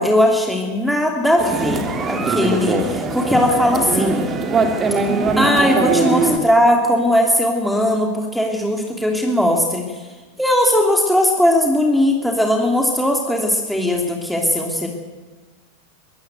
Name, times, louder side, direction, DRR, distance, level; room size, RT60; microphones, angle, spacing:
voice 1, 0.0-4.2 5.4-10.0 10.4-14.9, left 1 dB, ahead, 2 dB, 3.0 m, -18 dB
sound 1, 1.4-6.4, right 3 dB, 30° right, 2.8 m, -21 dB
22.0 x 14.5 x 8.1 m, 1.3 s
hypercardioid pair, 95°, 0 cm